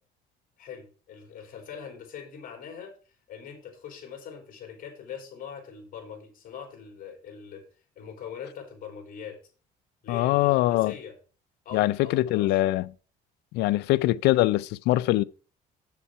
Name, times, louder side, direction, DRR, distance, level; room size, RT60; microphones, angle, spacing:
voice 1, 0.6-2.9 3.3-7.6 7.9-9.4 10.0-11.1 11.6-12.6 13.6-13.8, left 7 dB, 55° left, 3.4 m, -42 dB
voice 2, 10.1-10.9 11.7-12.9 13.5-15.2, left 17 dB, 85° left, 0.4 m, -23 dB
7.4 x 7.1 x 4.6 m
cardioid pair, 110°, 17 cm